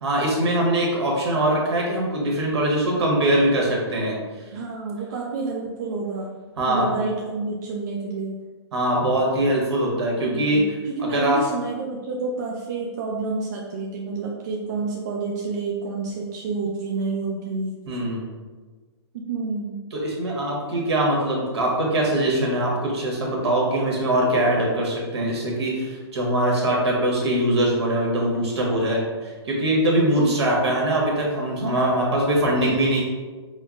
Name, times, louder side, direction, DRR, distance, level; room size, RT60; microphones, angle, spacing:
voice 1, 0.0-4.2 6.6-6.9 8.7-10.6 11.0-11.4 17.9-18.2 20.0-33.0, right 1 dB, 70° right, -2 dB, 1.2 m, -22 dB
voice 2, 4.5-6.4 6.7-8.4 10.2-17.8 19.1-19.8 32.6-32.8, right 3 dB, 40° right, -2 dB, 0.4 m, -29 dB
5.3 x 2.0 x 2.4 m, 1.4 s
hypercardioid pair, 165°, 14 cm